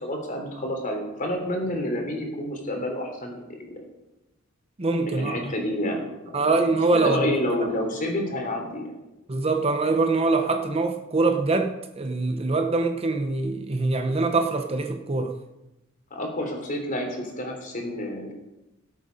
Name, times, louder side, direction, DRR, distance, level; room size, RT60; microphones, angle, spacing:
voice 1, 0.0-3.8 5.0-6.1 6.9-8.9 16.1-18.3, left 1 dB, 40° left, 3.2 m, -29 dB
voice 2, 4.8-5.5 6.3-7.3 9.3-15.3, right 3 dB, 30° right, 0.8 m, -24 dB
18.0 x 8.3 x 5.3 m
head